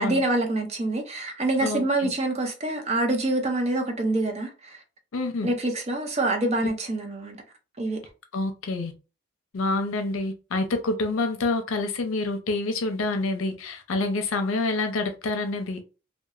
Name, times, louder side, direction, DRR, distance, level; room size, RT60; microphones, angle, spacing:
voice 1, 0.0-4.8 5.4-7.4 7.8-8.0, right 2 dB, 30° right, 0.6 m, -26 dB
voice 2, 1.6-2.1 5.1-5.5 8.3-8.9 9.5-15.8, left 2 dB, 85° left, 0.6 m, -27 dB
2.9 x 2.2 x 2.4 m
head